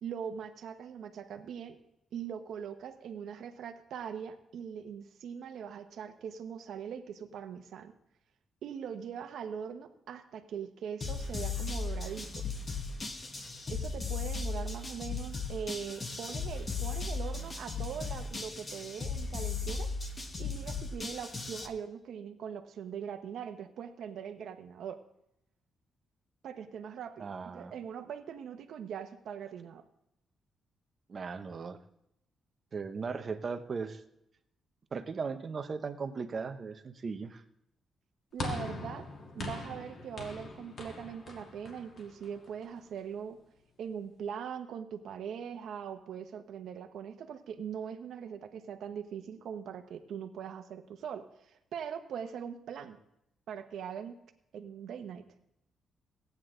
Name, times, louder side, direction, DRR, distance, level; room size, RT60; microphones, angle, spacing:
voice 1, 0.0-1.8 2.1-7.9 8.6-12.4 13.7-19.9 20.4-25.0 26.4-29.8 38.3-39.1 39.3-43.4 43.8-53.0 53.5-54.2 54.5-55.2, right 8 dB, 75° right, 8 dB, 1.0 m, -41 dB
sound 1, 11.0-21.7, left 4 dB, 30° left, 1.1 m, -36 dB
voice 2, 27.2-27.7 31.1-31.8 32.7-34.0 34.9-37.4, right 5 dB, 40° right, 9 dB, 0.8 m, -37 dB
sound 2, 38.4-42.8, left 3 dB, 50° left, 1.9 m, -42 dB
15.5 x 9.6 x 3.8 m, 0.81 s
cardioid pair, 135°, 0 cm